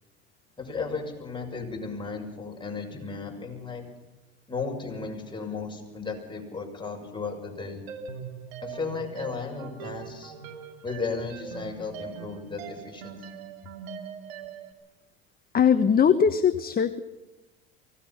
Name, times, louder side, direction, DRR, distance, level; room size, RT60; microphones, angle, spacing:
voice 1, 0.6-3.8 4.5-7.8 8.6-10.3 10.8-13.4, left 4 dB, 15° left, 1 dB, 6.8 m, -35 dB
sound 1, 7.9-14.7, right 7 dB, 80° right, 2.7 m, -41 dB
voice 2, 15.5-17.0, left 7 dB, 30° left, 10 dB, 1.2 m, -20 dB
24.5 x 18.0 x 5.9 m, 1.0 s
hypercardioid pair, 85°, 30 cm